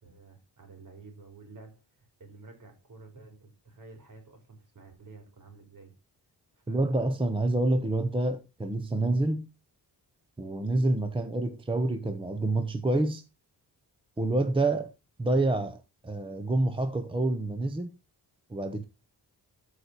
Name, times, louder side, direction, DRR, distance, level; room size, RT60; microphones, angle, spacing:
voice 1, 0.0-5.9 6.5-7.2, right 3 dB, 50° right, 3.5 m, -51 dB
voice 2, 6.7-9.5 10.4-13.2 14.2-14.9 15.2-17.9 18.5-18.8, right 2 dB, 15° right, 0.8 m, -27 dB
13.5 x 4.9 x 4.2 m
wide cardioid pair, 155°, 40 cm